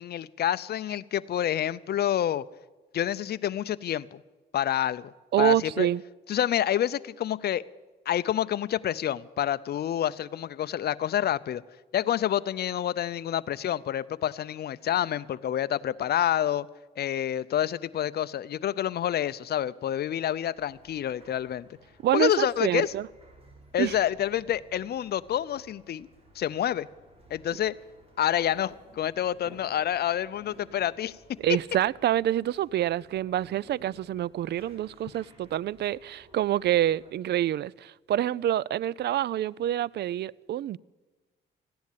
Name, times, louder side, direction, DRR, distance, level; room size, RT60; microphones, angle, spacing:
voice 1, 0.0-2.4 2.9-4.2 4.5-5.1 5.4-5.9 6.3-7.6 8.1-11.6 11.9-16.7 17.0-21.7 22.1-22.9 23.7-26.1 26.4-26.9 27.3-27.7 28.2-31.2, left 11 dB, 55° left, 0.6 m, -28 dB
voice 2, 5.3-6.0 22.0-23.1 23.8-23.9 31.4-40.8, right 12 dB, 60° right, 0.4 m, -27 dB
sound 1, 20.5-37.1, right 1 dB, 30° right, 4.2 m, -56 dB
15.0 x 10.5 x 9.2 m
cardioid pair, 90°, 20 cm